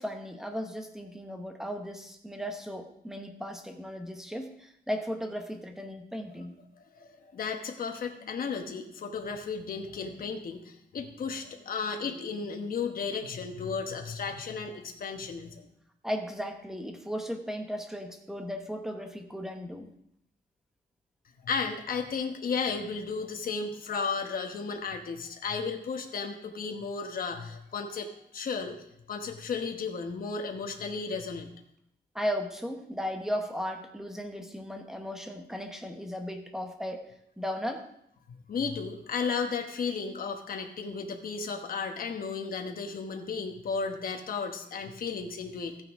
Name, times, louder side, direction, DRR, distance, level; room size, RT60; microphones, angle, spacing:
voice 1, 0.0-6.6 16.0-19.9 32.1-37.8, equal, 5° right, 5 dB, 1.0 m, -36 dB
voice 2, 6.9-15.7 21.4-28.1 28.3-31.5 38.3-45.8, left 5 dB, 55° left, 4 dB, 1.1 m, -34 dB
14.0 x 9.4 x 3.6 m, 0.75 s
wide cardioid pair, 165°, 18 cm